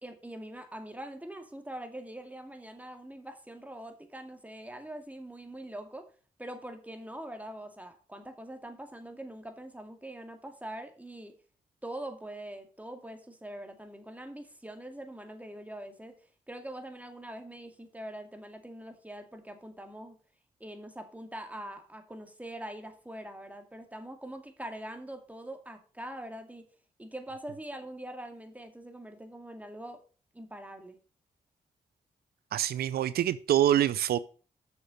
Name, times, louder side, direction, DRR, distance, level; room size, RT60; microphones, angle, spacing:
voice 1, 0.0-6.1 6.4-11.4 11.8-16.2 16.5-20.2 20.6-26.7 27.0-30.0 30.3-31.0, right 1 dB, 10° right, 2.2 m, -43 dB
voice 2, 32.5-34.2, right 11 dB, 90° right, 0.4 m, -25 dB
7.1 x 6.6 x 6.3 m
cardioid pair, 50°, 16 cm